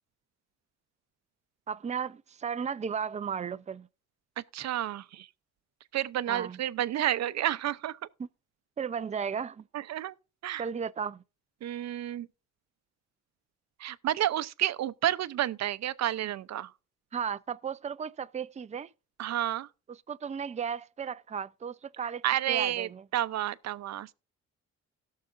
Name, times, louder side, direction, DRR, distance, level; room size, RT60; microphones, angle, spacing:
voice 1, 1.7-3.9 6.3-6.6 8.2-8.3 8.8-9.6 10.6-11.2 17.1-18.9 19.9-23.0, right 7 dB, 25° right, 0.5 m, -35 dB
voice 2, 4.4-5.3 5.9-8.0 9.7-10.1 10.4-10.7 11.6-12.3 13.8-16.7 19.2-19.7 22.0-24.1, right 12 dB, 60° right, 0.7 m, -30 dB
17.5 x 6.6 x 2.5 m
cardioid pair, 90°, 30 cm